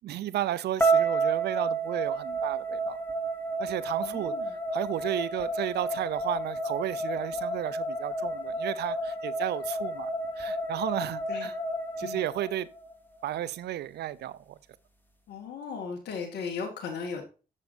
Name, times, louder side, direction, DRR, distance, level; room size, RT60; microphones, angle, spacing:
voice 1, 0.0-3.0 3.6-4.3 4.7-10.1 10.4-11.5 12.0-12.7 13.2-14.4, right 12 dB, 75° right, 0.6 m, -33 dB
sound 1, 0.8-12.9, right 2 dB, 10° left, 2.2 m, -31 dB
voice 2, 4.0-4.5 11.3-11.5 12.0-12.2 15.3-17.2, left 5 dB, 75° left, 1.8 m, -36 dB
8.2 x 6.9 x 2.7 m
supercardioid pair, 55°, 17 cm